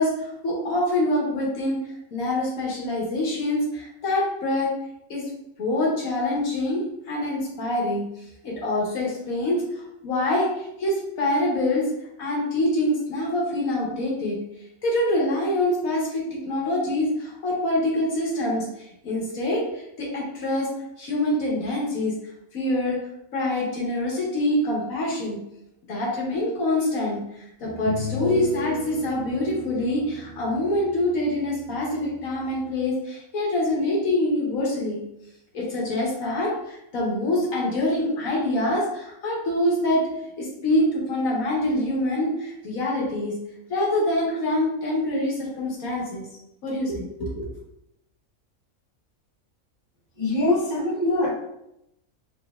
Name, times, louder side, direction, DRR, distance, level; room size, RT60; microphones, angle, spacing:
voice 1, 0.0-1.8 2.1-4.7 5.1-5.2 5.6-8.0 8.4-11.9 12.2-14.4 14.8-20.7 21.0-22.1 22.5-23.0 23.3-25.4 25.9-35.0 35.5-40.0 40.4-43.3 43.7-46.3 46.6-47.4, left 1 dB, 75° left, -3 dB, 1.4 m, -25 dB
sound 1, 26.5-26.6 27.6-32.9, equal, 55° right, 1.3 m, -35 dB
voice 2, 50.2-51.3, left 2 dB, 25° left, -8 dB, 1.2 m, -23 dB
4.2 x 3.8 x 2.3 m, 0.83 s
omnidirectional pair, 1.5 m